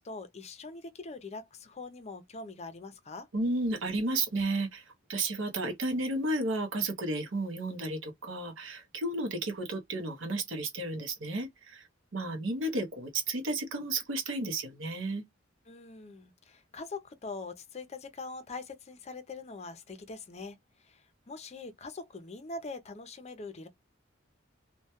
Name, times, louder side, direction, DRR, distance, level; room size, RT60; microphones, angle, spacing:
voice 1, 0.0-3.3 15.7-23.7, left 3 dB, 35° left, 0.5 m, -43 dB
voice 2, 3.3-11.9 12.1-15.2, right 2 dB, 70° right, 0.7 m, -32 dB
2.2 x 2.2 x 2.8 m
head